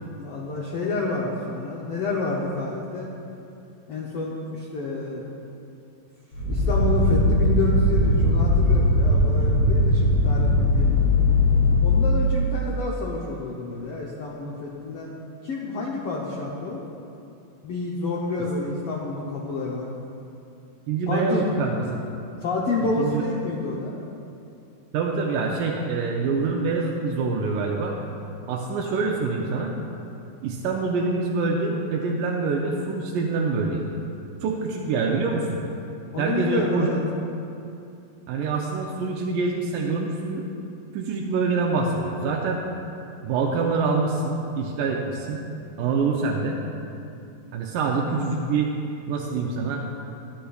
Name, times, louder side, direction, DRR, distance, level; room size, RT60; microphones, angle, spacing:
voice 1, 0.2-3.1 3.9-5.2 6.5-11.0 11.8-15.1 15.4-16.8 17.6-19.9 21.1-21.5 22.4-24.0 36.1-37.0, left 2 dB, 80° left, -4 dB, 1.3 m, -29 dB
sound 1, 6.3-12.1, left 1 dB, 40° left, 3.1 m, -19 dB
voice 2, 20.9-21.7 23.0-23.2 24.9-28.0 28.5-29.7 30.4-33.9 34.4-35.6 36.2-36.9 38.3-40.5 40.9-42.6 43.2-45.4 45.8-46.6 47.5-48.7 49.1-49.8, right 4 dB, 85° right, -1 dB, 2.3 m, -25 dB
13.0 x 10.0 x 2.3 m, 2.6 s
omnidirectional pair, 3.7 m